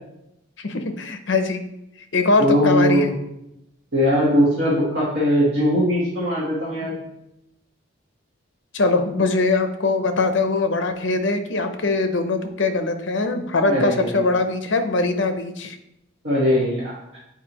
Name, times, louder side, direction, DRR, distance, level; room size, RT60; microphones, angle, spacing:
voice 1, 0.6-1.6 2.1-3.1 8.7-15.8, left 3 dB, 65° left, 7 dB, 0.7 m, -22 dB
voice 2, 2.4-3.1 3.9-6.9 13.7-14.2 16.2-17.0, equal, 60° right, -7 dB, 1.5 m, -20 dB
8.2 x 4.6 x 3.0 m, 0.83 s
head